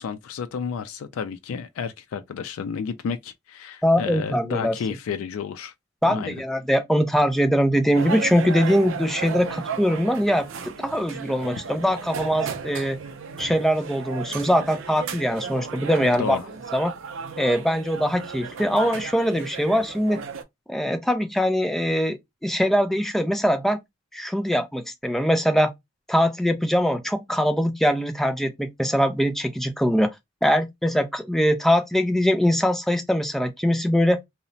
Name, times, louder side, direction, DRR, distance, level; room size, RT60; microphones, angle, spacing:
voice 1, 0.0-5.7 6.0-6.3 16.0-16.5, left 6 dB, 90° left, 0.3 m, -31 dB
voice 2, 3.8-4.7 6.0-13.0 13.4-16.4 16.7-16.9 17.4-20.2 20.7-23.8 24.1-25.7 26.1-30.1 30.4-34.2, equal, ahead, 0.3 m, -22 dB
sound 1, 7.9-20.4, right 6 dB, 65° right, 0.4 m, -35 dB
2.9 x 2.1 x 2.5 m
head